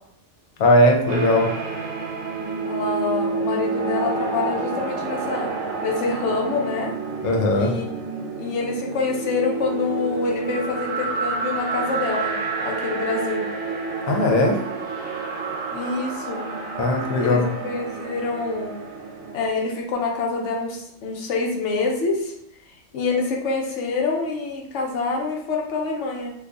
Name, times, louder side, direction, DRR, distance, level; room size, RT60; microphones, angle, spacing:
voice 1, 0.6-1.5 7.2-7.7 14.1-14.6 16.8-17.5, left 1 dB, 90° left, 2 dB, 1.1 m, -18 dB
sound 1, 1.1-19.5, right 4 dB, 60° right, 0.9 m, -29 dB
voice 2, 2.6-5.5 5.8-6.9 7.5-12.4 12.6-13.5 15.7-16.5 17.2-17.4 17.6-18.7 19.3-22.3 22.9-26.3, left 3 dB, 65° left, 0 dB, 0.9 m, -26 dB
2.6 x 2.3 x 3.7 m, 0.75 s
omnidirectional pair, 1.5 m